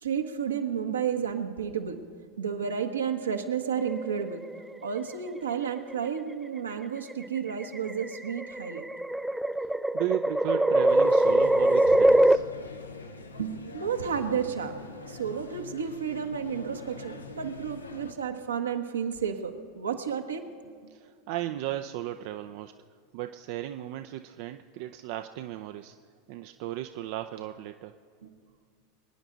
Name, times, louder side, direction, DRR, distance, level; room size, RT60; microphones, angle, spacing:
voice 1, 0.0-2.0 2.4-4.4 4.8-8.9 13.4-20.5 20.8-20.9 28.2-28.3, right 7 dB, 80° right, 4 dB, 1.2 m, -32 dB
sound 1, 3.8-4.6 5.8-6.2 7.1-12.4, right 1 dB, 5° right, 0.4 m, -23 dB
voice 2, 9.9-12.4 20.9-22.7 23.1-26.0 26.3-27.9, right 13 dB, 55° right, 8 dB, 0.5 m, -35 dB
sound 2, 10.9-18.1, left 3 dB, 90° left, 0.9 m, -44 dB
25.0 x 9.9 x 3.9 m, 2.2 s
hypercardioid pair, 85°, 0 cm